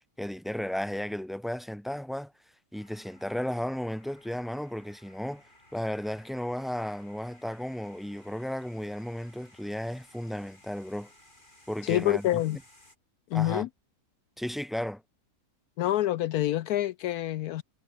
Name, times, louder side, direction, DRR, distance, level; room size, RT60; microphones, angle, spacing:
voice 1, 0.2-2.3 2.7-5.4 5.7-11.1 11.7-12.3 13.3-13.7 14.4-15.0, equal, ahead, 2.6 m, -34 dB
sound 1, 2.7-13.0, left 1 dB, 30° left, 6.5 m, -59 dB
voice 2, 11.8-12.6 13.3-13.7 15.8-17.6, left 14 dB, 75° left, 1.1 m, -27 dB
omnidirectional pair, 1.7 m